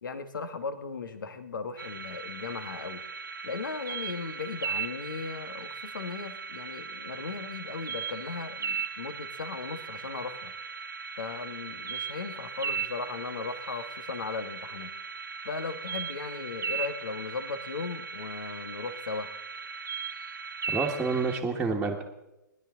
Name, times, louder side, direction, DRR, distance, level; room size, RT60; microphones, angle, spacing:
voice 1, 0.0-3.0 3.4-10.5 11.2-14.9 15.4-19.3, left 4 dB, 75° left, 9 dB, 1.6 m, -37 dB
sound 1, 1.8-21.4, right 6 dB, 80° right, 0.9 m, -38 dB
voice 2, 20.7-22.0, right 4 dB, 5° right, -5 dB, 1.7 m, -28 dB
20.0 x 11.5 x 3.9 m, 0.95 s
hypercardioid pair, 125°, 11 cm